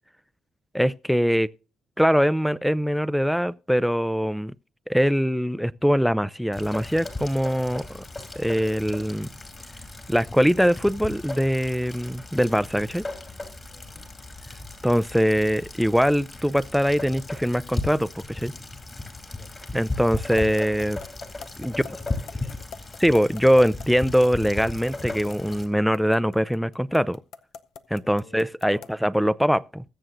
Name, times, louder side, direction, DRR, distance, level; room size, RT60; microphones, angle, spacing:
voice 1, 0.7-1.5 2.0-4.5 4.9-8.0 8.4-9.3 10.1-13.1 14.8-18.5 19.7-21.0 21.6-21.7 23.0-27.2 27.9-29.8, equal, ahead, 0.4 m, -22 dB
Rain, 6.5-25.7, left 2 dB, 25° left, 2.8 m, -36 dB
voice 2, 13.7-14.1 19.2-19.6 21.7-22.7 28.0-28.5 28.7-28.9, left 2 dB, 50° left, 6.2 m, -49 dB
sound 1, 20.2-29.0, left 7 dB, 75° left, 0.7 m, -42 dB
20.5 x 7.7 x 2.6 m
cardioid pair, 90°, 0 cm